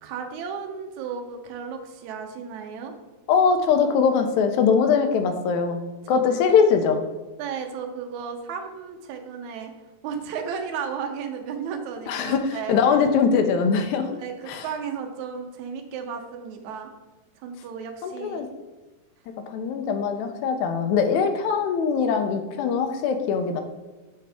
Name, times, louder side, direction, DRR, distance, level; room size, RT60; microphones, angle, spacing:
voice 1, 0.0-2.9 6.1-6.2 7.4-9.7 10.0-12.8 14.2-16.9 17.4-18.5, right 6 dB, 75° right, 5 dB, 2.0 m, -34 dB
voice 2, 3.3-7.0 12.1-14.1 14.5-14.7 18.0-18.5 19.5-23.6, left 6 dB, 80° left, 6 dB, 1.9 m, -22 dB
6.6 x 5.2 x 3.5 m, 1.2 s
omnidirectional pair, 3.6 m